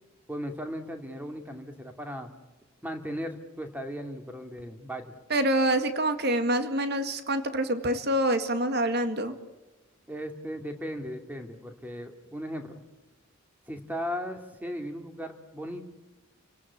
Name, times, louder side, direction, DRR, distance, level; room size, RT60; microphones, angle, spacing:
voice 1, 0.3-2.3 2.8-5.1 10.1-12.8 13.7-15.9, equal, 10° right, 5 dB, 2.6 m, -37 dB
voice 2, 5.3-9.3, right 1 dB, 50° right, 9 dB, 1.9 m, -26 dB
30.0 x 18.0 x 8.7 m, 1.1 s
head